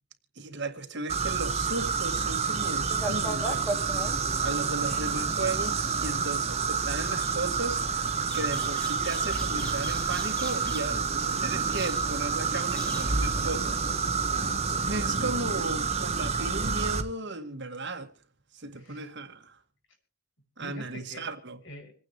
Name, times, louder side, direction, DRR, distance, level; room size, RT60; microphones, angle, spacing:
voice 1, 0.4-3.8 4.4-13.8 14.1-14.2 14.7-18.1 18.5-19.6 20.6-21.6, right 3 dB, 55° right, 1.8 m, -35 dB
sound 1, 1.1-17.0, right 5 dB, 30° right, 1.2 m, -29 dB
sound 2, 2.4-14.0, right 1 dB, 5° left, 2.5 m, -41 dB
voice 2, 4.1-4.4 14.3-14.7 18.7-19.1 20.6-21.3 21.6-21.9, left 1 dB, 60° left, 5.7 m, -45 dB
27.0 x 9.5 x 3.0 m
head